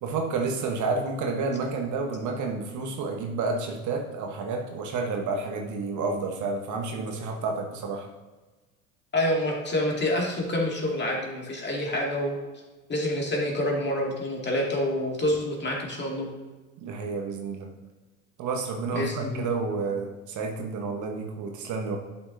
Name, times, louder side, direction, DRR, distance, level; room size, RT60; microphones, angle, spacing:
voice 1, 0.0-8.1 16.8-17.7 18.4-22.0, right 4 dB, 45° right, 3 dB, 1.2 m, -30 dB
voice 2, 9.1-12.4 12.9-16.3 18.9-19.4, left 1 dB, 25° left, -1 dB, 2.2 m, -27 dB
11.0 x 5.8 x 2.7 m, 1.2 s
hypercardioid pair, 75°, 42 cm